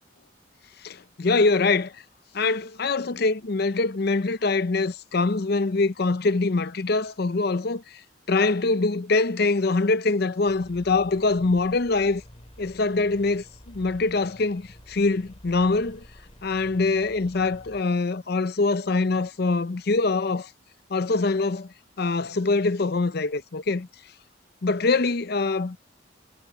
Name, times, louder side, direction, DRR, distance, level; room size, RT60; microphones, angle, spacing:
voice 1, 0.8-1.9 2.3-8.0 8.3-12.2 12.6-16.0 16.4-20.5 20.9-21.7 22.0-23.9 24.6-25.8, left 3 dB, 50° left, 0.6 m, -24 dB
sound 1, 10.4-17.8, equal, 30° left, 2.6 m, -49 dB
head